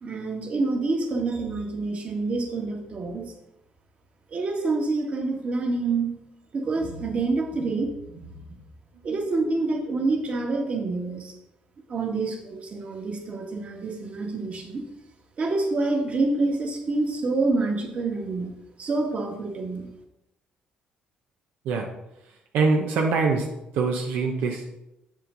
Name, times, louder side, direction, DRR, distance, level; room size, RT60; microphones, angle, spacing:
voice 1, 0.0-3.3 4.3-6.1 6.5-8.4 9.0-11.3 11.9-14.8 15.4-18.5 18.8-19.8, right 3 dB, 45° right, 1 dB, 1.8 m, -27 dB
voice 2, 22.3-23.5 23.7-24.6, right 4 dB, 85° right, 1 dB, 0.9 m, -24 dB
7.4 x 7.1 x 3.9 m, 0.88 s
cardioid pair, 95°, 3 cm